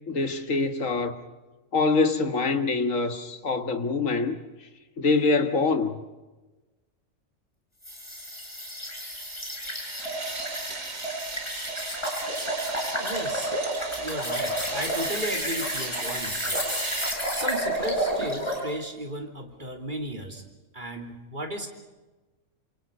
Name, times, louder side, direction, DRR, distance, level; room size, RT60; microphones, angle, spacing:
voice 1, 0.1-1.2 1.7-4.4 5.0-6.0, left 3 dB, 80° left, 2.0 m, -24 dB
sound 1, 7.8-18.6, right 1 dB, 20° left, 6.1 m, -31 dB
sound 2, 9.1-17.1, right 3 dB, 85° right, 2.6 m, -38 dB
voice 2, 13.0-13.5 14.0-16.6 17.3-20.4 20.7-21.7, right 1 dB, 35° right, 3.3 m, -35 dB
28.5 x 26.5 x 5.4 m
omnidirectional pair, 1.3 m